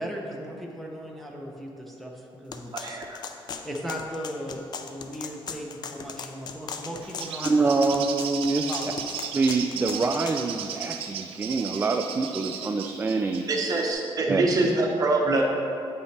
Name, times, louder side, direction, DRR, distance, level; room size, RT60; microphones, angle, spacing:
voice 1, 0.0-3.0 3.6-7.6 8.7-8.9, equal, ahead, -2 dB, 0.8 m, -37 dB
sound 1, 2.5-10.4, left 6 dB, 50° left, 0.5 m, -38 dB
voice 2, 2.7-3.2 13.5-15.4, right 2 dB, 40° right, -1 dB, 1.1 m, -24 dB
Bird, 7.0-13.9, right 8 dB, 85° right, 0.5 m, -36 dB
voice 3, 7.4-8.7 9.3-13.5 14.3-14.4, right 3 dB, 20° right, 4 dB, 0.3 m, -25 dB
9.2 x 5.4 x 3.3 m, 2.5 s
cardioid pair, 130°, 9 cm